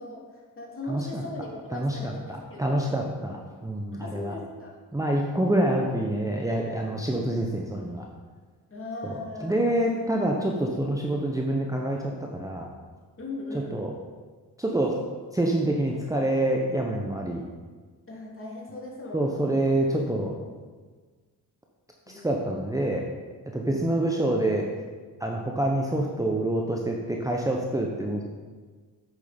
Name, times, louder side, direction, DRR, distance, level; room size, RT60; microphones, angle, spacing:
voice 1, 0.0-2.8 3.9-4.8 5.7-5.9 8.7-9.8 13.2-13.9 15.9-16.1 18.1-19.5 20.2-20.4 22.1-22.5 23.6-24.1, left 2 dB, 30° left, -3 dB, 3.0 m, -39 dB
voice 2, 0.9-1.2 1.7-2.1 2.6-4.3 4.9-8.1 9.0-9.1 9.4-12.7 13.7-13.9 14.6-15.0 15.3-17.4 19.1-20.3 22.2-23.1 23.5-24.7 25.2-28.2, right 1 dB, 10° right, 0 dB, 1.0 m, -26 dB
8.5 x 6.5 x 5.3 m, 1.5 s
cardioid pair, 65°, 40 cm